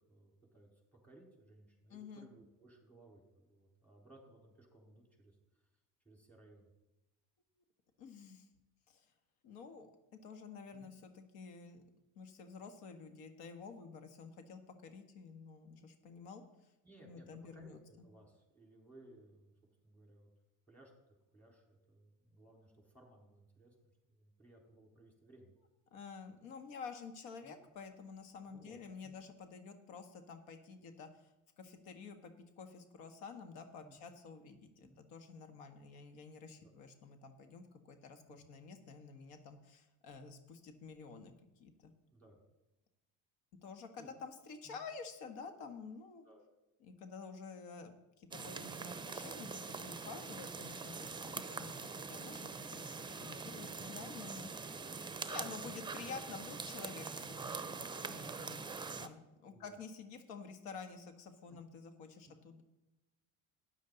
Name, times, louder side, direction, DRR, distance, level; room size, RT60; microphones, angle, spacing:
voice 1, 0.1-5.4 6.0-6.7 10.7-10.9 16.8-19.5 19.8-20.3 20.7-25.5 27.4-27.6 28.5-28.8 29.0-29.2 33.8-34.0 34.8-35.0 36.6-36.7 38.3-38.5 42.1-42.4 44.0-44.1 44.6-44.8 46.2-46.4 50.5-51.2 53.5-53.8 57.0-57.5 59.5-59.8 61.5-61.8 62.2-62.4, right 1 dB, 5° left, -1 dB, 4.2 m, -61 dB
voice 2, 1.9-2.3 8.0-8.5 8.9-9.1 9.4-9.9 10.2-11.8 12.2-16.7 17.0-17.8 25.9-31.3 31.6-41.3 41.6-41.9 43.6-46.2 46.8-54.9 55.2-58.6 59.0-62.6, left 5 dB, 75° left, 7 dB, 1.7 m, -50 dB
sound 1, 48.3-59.1, right 4 dB, 10° right, 0.7 m, -44 dB
13.0 x 9.6 x 4.0 m, 0.98 s
supercardioid pair, 95°, 39 cm